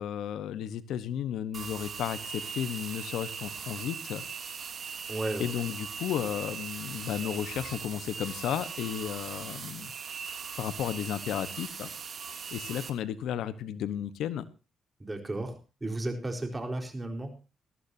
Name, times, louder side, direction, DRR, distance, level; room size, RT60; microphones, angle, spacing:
voice 1, 0.0-4.2 5.4-9.9 10.6-11.9 12.5-14.4, left 10 dB, 80° left, 14 dB, 1.1 m, -33 dB
sound 1, 1.5-12.9, right 6 dB, 50° right, 2.6 m, -40 dB
voice 2, 5.1-5.4 15.0-17.4, right 2 dB, 20° right, 4 dB, 4.3 m, -34 dB
20.0 x 13.5 x 2.8 m, 0.32 s
cardioid pair, 90°, 0 cm